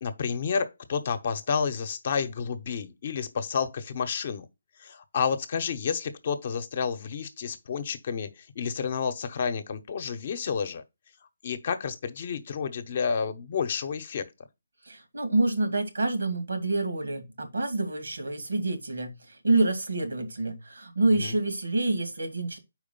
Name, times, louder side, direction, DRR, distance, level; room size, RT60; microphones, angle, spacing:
voice 1, 0.0-4.5 4.8-10.8 11.4-14.3 21.1-21.3, left 6 dB, 50° left, 0.9 m, -30 dB
voice 2, 14.9-22.6, right 2 dB, 85° right, 2.1 m, -27 dB
5.0 x 4.7 x 5.4 m
figure-of-eight pair, 150°, 0 cm